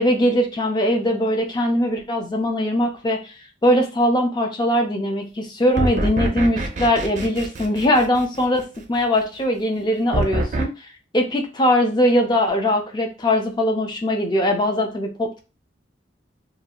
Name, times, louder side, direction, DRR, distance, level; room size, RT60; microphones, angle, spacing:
voice 1, 0.0-3.3 3.6-10.7 11.1-15.4, left 1 dB, 20° left, 3 dB, 0.4 m, -21 dB
sound 1, 5.8-8.6 10.1-10.6, right 1 dB, 40° right, 0.4 m, -25 dB
2.7 x 2.4 x 2.8 m, 0.30 s
head